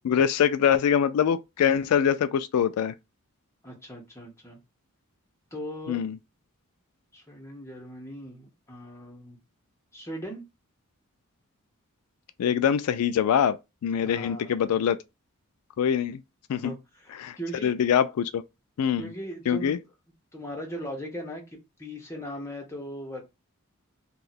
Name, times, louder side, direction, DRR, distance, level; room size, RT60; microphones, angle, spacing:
voice 1, 0.0-2.9 5.9-6.2 12.4-13.6 13.8-15.0 15.8-16.2 16.5-16.7 17.2-17.4 17.6-18.4 18.8-19.1 19.5-19.8, left 8 dB, 90° left, 0.3 m, -24 dB
voice 2, 3.6-4.6 5.5-6.0 7.1-9.4 9.9-10.4 14.0-14.7 16.5-17.8 19.0-19.8 20.3-23.2, equal, 10° left, 1.0 m, -39 dB
2.8 x 2.3 x 4.0 m
head